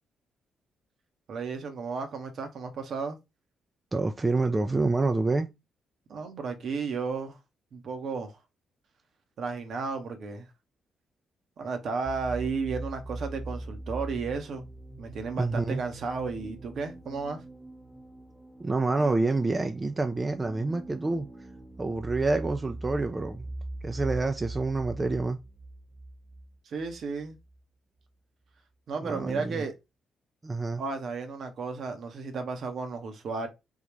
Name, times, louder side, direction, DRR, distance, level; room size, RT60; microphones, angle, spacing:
voice 1, 1.3-3.2 6.1-7.4 7.7-8.4 9.4-10.5 11.6-14.6 15.0-17.4 26.7-27.4 28.9-29.7 30.8-33.5, right 4 dB, 55° right, 0.8 m, -33 dB
voice 2, 3.9-5.5 15.4-15.8 18.6-21.3 21.8-23.4 23.8-25.4 29.0-29.6 30.4-30.8, right 3 dB, 25° right, 0.4 m, -27 dB
sound 1, 12.1-27.6, right 2 dB, 20° left, 1.2 m, -41 dB
3.7 x 2.3 x 3.0 m
hypercardioid pair, 40°, 0 cm